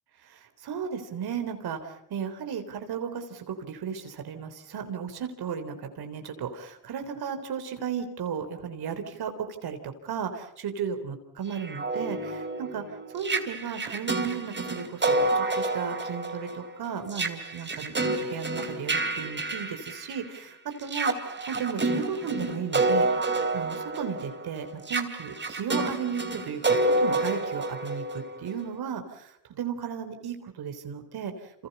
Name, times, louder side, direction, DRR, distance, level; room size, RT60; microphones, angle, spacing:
voice 1, 0.2-23.2 23.5-31.7, right 7 dB, 65° right, 7 dB, 3.8 m, -35 dB
sound 1, 11.5-20.4 20.8-28.6, right 2 dB, 25° right, 3.1 m, -29 dB
29.5 x 27.5 x 5.7 m, 0.75 s
cardioid pair, 85°, 41 cm